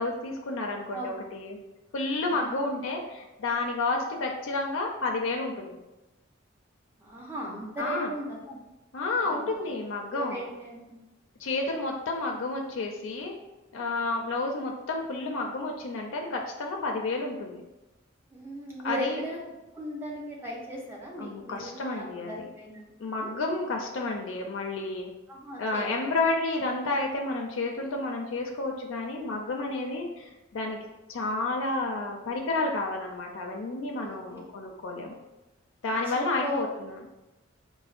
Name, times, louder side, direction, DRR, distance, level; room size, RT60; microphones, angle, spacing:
voice 1, 0.0-1.6 1.9-5.8 7.8-8.1 8.9-10.4 11.4-13.3 13.7-17.6 18.8-19.2 21.2-22.5 23.0-25.1 25.6-30.8 31.1-35.1 35.8-37.0, left 2 dB, 75° left, 1 dB, 0.4 m, -31 dB
voice 2, 7.0-8.6 9.2-9.4 10.1-11.0 18.3-19.4 19.7-22.9 23.2-23.3 25.3-25.8 33.9-34.2 36.1-36.6, equal, 10° right, -3 dB, 0.6 m, -37 dB
4.3 x 2.1 x 2.4 m, 1.0 s
head